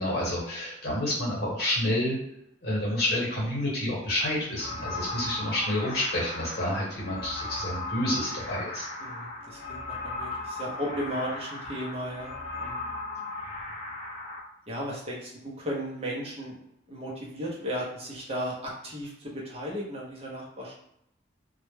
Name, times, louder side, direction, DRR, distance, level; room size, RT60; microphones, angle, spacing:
voice 1, 0.0-2.2 2.6-8.9, left 1 dB, 55° left, -5 dB, 1.0 m, -29 dB
sound 1, 4.6-14.4, left 2 dB, 35° left, 0.5 m, -37 dB
voice 2, 9.0-12.3 12.6-12.9 14.7-16.6 16.9-20.8, equal, 30° right, -3 dB, 0.5 m, -35 dB
2.1 x 2.0 x 3.1 m, 0.76 s
head